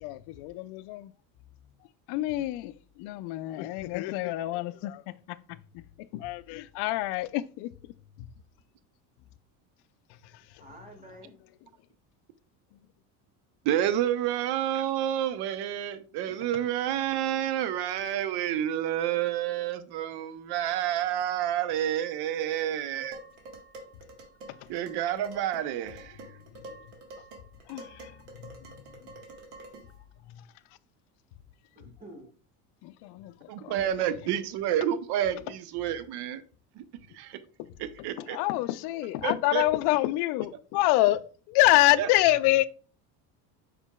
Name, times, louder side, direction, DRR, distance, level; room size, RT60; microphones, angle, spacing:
voice 1, 0.0-1.1 2.1-5.0 5.3-5.4 6.1-7.7 27.7-28.1 28.4-28.5 32.8-33.5 37.6-37.7 38.3-41.2 41.5-42.7, left 17 dB, 60° left, 0.5 m, -26 dB
voice 2, 10.6-11.3 31.7-32.3, right 1 dB, 20° right, 1.6 m, -48 dB
voice 3, 13.6-23.2 24.7-26.2 33.5-36.4 36.8-36.9 37.1-37.4 37.8-38.4 39.2-39.6 42.0-42.1, right 11 dB, 60° right, 0.7 m, -29 dB
Dishes pots and pans, 23.1-30.0, right 2 dB, 80° right, 1.4 m, -48 dB
5.1 x 4.4 x 2.2 m
supercardioid pair, 85°, 46 cm